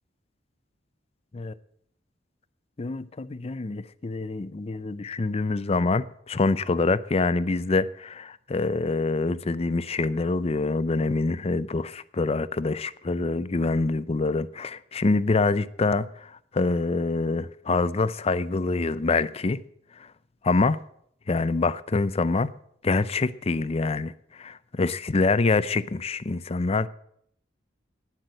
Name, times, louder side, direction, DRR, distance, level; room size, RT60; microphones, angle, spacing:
voice 1, 2.8-19.6 20.4-20.8 21.3-22.5 22.8-26.9, left 3 dB, 35° left, 0.5 m, -25 dB
12.0 x 9.9 x 7.7 m
head